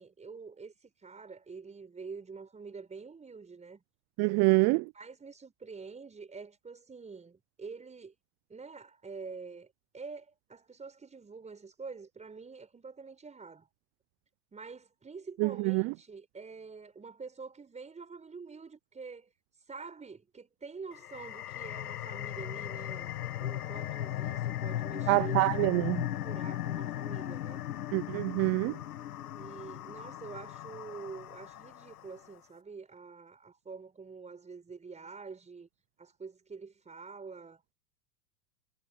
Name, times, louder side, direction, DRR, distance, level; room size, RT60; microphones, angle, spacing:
voice 1, 0.0-3.8 4.9-8.2 8.5-13.7 14.5-19.3 19.7-23.1 23.4-25.4 26.2-27.6 29.4-35.7 36.0-37.6, right 4 dB, 15° right, 5.3 m, -46 dB
voice 2, 4.2-4.9 15.4-15.9 25.1-26.1 27.9-28.8, right 26 dB, 35° right, 0.5 m, -26 dB
sound 1, 20.9-32.1, left 12 dB, 75° left, 2.1 m, -37 dB
hypercardioid pair, 105°, 45 cm